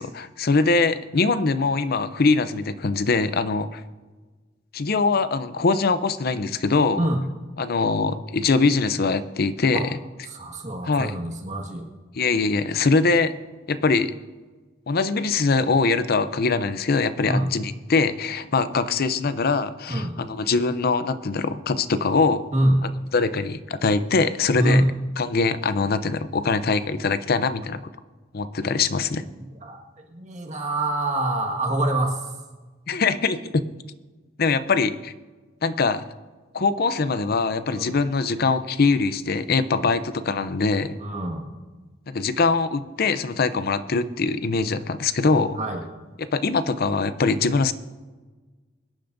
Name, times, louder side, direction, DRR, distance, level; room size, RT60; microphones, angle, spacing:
voice 1, 0.0-3.8 4.7-7.1 7.6-9.9 10.8-11.1 12.2-13.3 13.7-14.1 14.9-22.4 23.1-24.8 25.2-27.9 28.3-29.2 32.9-33.6 34.4-35.1 35.6-36.0 36.5-41.0 42.1-45.6 46.3-47.7, left 4 dB, 55° left, 13 dB, 0.6 m, -22 dB
voice 2, 7.0-7.3 9.7-10.0 10.2-11.9 17.2-17.5 19.9-20.1 22.5-22.8 24.5-24.9 29.4-29.8 30.1-32.3 37.7-38.0 39.7-39.9 41.0-41.5 45.5-45.9, right 1 dB, 40° right, 1 dB, 1.7 m, -25 dB
23.5 x 10.0 x 2.6 m, 1.3 s
head